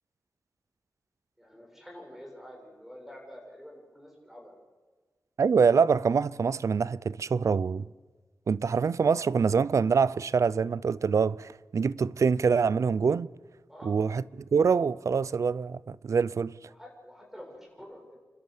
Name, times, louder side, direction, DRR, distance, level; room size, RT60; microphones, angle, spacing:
voice 1, 1.4-4.5 13.7-14.0 16.7-18.1, equal, 5° right, 7.5 m, -48 dB
voice 2, 5.4-7.9 8.5-13.3 13.8-16.6, right 5 dB, 60° right, 0.5 m, -25 dB
29.5 x 13.0 x 8.2 m
wide cardioid pair, 100°, 6 cm